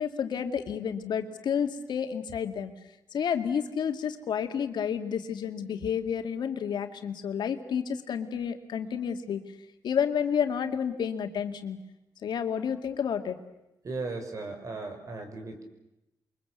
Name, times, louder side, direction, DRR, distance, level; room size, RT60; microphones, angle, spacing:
voice 1, 0.0-2.7 3.1-9.4 9.8-11.8 12.2-13.4, left 7 dB, 90° left, 6 dB, 2.4 m, -30 dB
voice 2, 13.8-15.6, right 3 dB, 45° right, 6 dB, 5.9 m, -36 dB
29.0 x 23.5 x 8.3 m, 0.90 s
wide cardioid pair, 135°, 7 cm